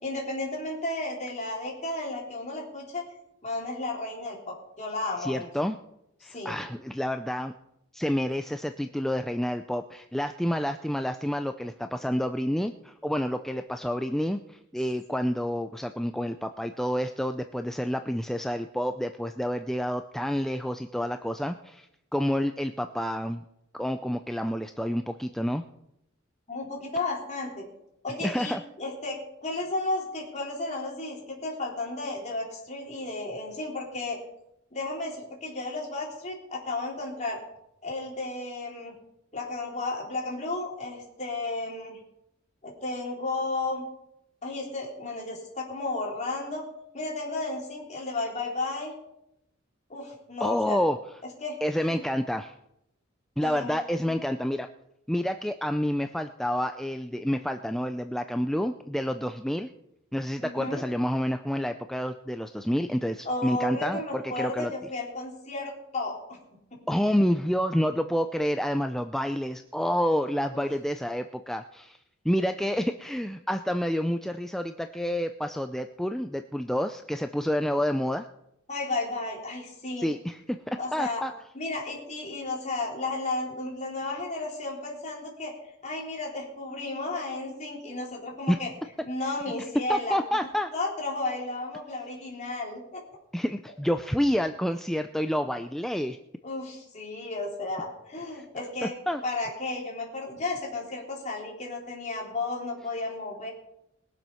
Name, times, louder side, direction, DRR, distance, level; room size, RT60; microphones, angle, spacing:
voice 1, 0.0-3.0 3.4-5.5 6.3-6.6 26.5-27.7 28.0-34.2 34.7-37.4 37.8-38.9 39.3-42.0 42.6-43.8 44.4-46.7 46.9-48.9 49.9-50.8 51.4-52.0 53.4-53.8 54.0-54.2 60.4-60.8 63.2-66.4 66.7-66.8 70.5-70.7 78.7-80.1 80.8-81.2 81.5-85.5 85.8-88.7 89.0-90.2 90.7-93.0 96.4-98.9 99.2-103.5, left 2 dB, 35° left, -2 dB, 3.9 m, -33 dB
voice 2, 5.2-5.8 6.2-7.5 7.9-21.9 22.1-23.4 23.7-25.6 28.2-28.6 50.4-51.0 51.6-52.5 53.4-54.7 55.1-59.7 60.1-64.0 64.4-64.7 66.9-72.0 72.2-78.3 80.0-81.3 88.5-88.6 89.9-90.7 93.3-96.2 98.3-98.4 98.8-99.2, equal, ahead, 7 dB, 0.4 m, -28 dB
20.5 x 7.5 x 5.6 m, 0.83 s
head